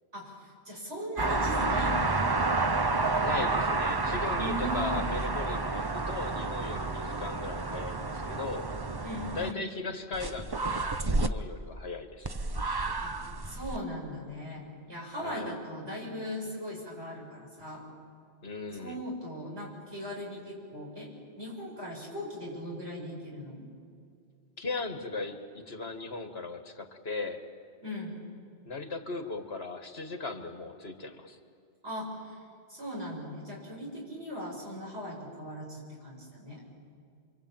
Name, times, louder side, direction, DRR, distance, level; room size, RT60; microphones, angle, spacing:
voice 1, 0.1-2.3 4.4-5.1 9.0-9.7 13.0-13.1 13.5-17.8 18.8-21.1 21.4-23.7 27.8-28.2 31.8-32.4 32.7-36.6, equal, 80° right, -2 dB, 7.3 m, -39 dB
sound 1, 1.2-9.5 10.1-11.3 12.2-13.8, right 3 dB, 25° right, 0.7 m, -30 dB
voice 2, 3.2-8.7 9.4-12.3 15.2-15.5 18.4-19.0 24.6-27.4 28.7-31.4, left 3 dB, 70° left, 7 dB, 2.1 m, -38 dB
28.5 x 23.5 x 8.9 m, 2.3 s
omnidirectional pair, 1.1 m